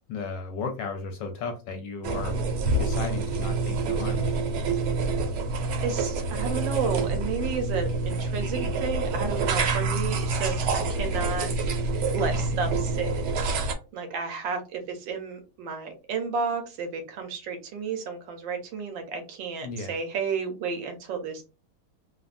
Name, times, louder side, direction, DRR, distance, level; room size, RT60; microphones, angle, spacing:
voice 1, 0.1-2.4 2.8-4.4 19.6-19.9, left 4 dB, 75° left, 5 dB, 1.1 m, -34 dB
sound 1, 2.0-13.7, right 3 dB, 90° right, 1.4 m, -27 dB
voice 2, 5.5-11.5 12.1-13.2 13.9-21.4, right 5 dB, 70° right, 5 dB, 1.3 m, -32 dB
3.5 x 2.1 x 2.4 m, 0.30 s
omnidirectional pair, 2.2 m